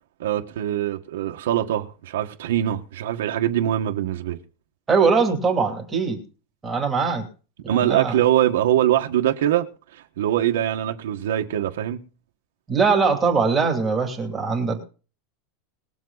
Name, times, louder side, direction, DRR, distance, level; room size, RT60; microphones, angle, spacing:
voice 1, 0.2-4.4 7.7-12.0, right 12 dB, 90° right, 1.5 m, -23 dB
voice 2, 4.9-6.2 6.6-7.3 7.6-8.2 12.7-14.9, right 5 dB, 10° right, 2.7 m, -21 dB
21.5 x 7.5 x 4.0 m
supercardioid pair, 170°, 0 cm